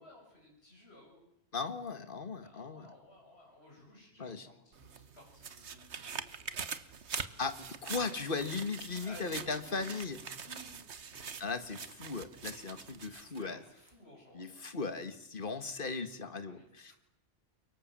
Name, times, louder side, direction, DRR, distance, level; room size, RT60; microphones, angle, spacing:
voice 1, 0.0-1.3 2.4-6.4 6.7-7.2 9.0-11.5 13.1-14.8 16.4-16.9, left 1 dB, 65° left, -1 dB, 7.2 m, -56 dB
voice 2, 1.5-2.9 4.2-4.5 7.4-10.2 11.4-13.6 14.3-16.9, left 4 dB, 50° left, 10 dB, 2.0 m, -37 dB
sound 1, 4.7-13.5 13.9-14.0, right 6 dB, 80° right, 1.6 m, -44 dB
29.5 x 24.0 x 7.6 m, 0.79 s
omnidirectional pair, 1.1 m